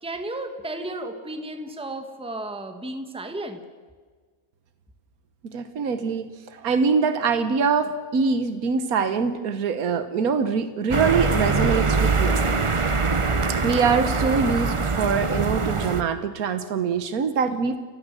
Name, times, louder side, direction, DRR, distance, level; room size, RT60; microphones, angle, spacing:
voice 1, 0.0-3.6, right 1 dB, 5° right, 7 dB, 1.6 m, -33 dB
voice 2, 5.4-12.4 13.5-17.8, right 5 dB, 85° right, 10 dB, 1.6 m, -24 dB
sound 1, 10.9-16.0, right 4 dB, 25° right, 0.8 m, -23 dB
30.0 x 15.5 x 7.6 m, 1.5 s
omnidirectional pair, 1.5 m